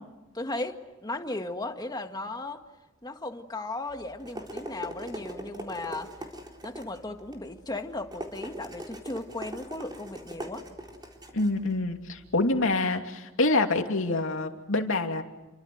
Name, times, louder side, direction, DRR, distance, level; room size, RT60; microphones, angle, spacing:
voice 1, 0.3-2.6 3.0-6.1 6.6-10.7, left 2 dB, 20° left, 5 dB, 2.0 m, -36 dB
sound 1, 3.9-12.8, equal, 20° right, 4.1 m, -42 dB
voice 2, 11.3-15.2, left 2 dB, 65° left, 4 dB, 2.8 m, -26 dB
30.0 x 24.5 x 7.9 m, 1.0 s
head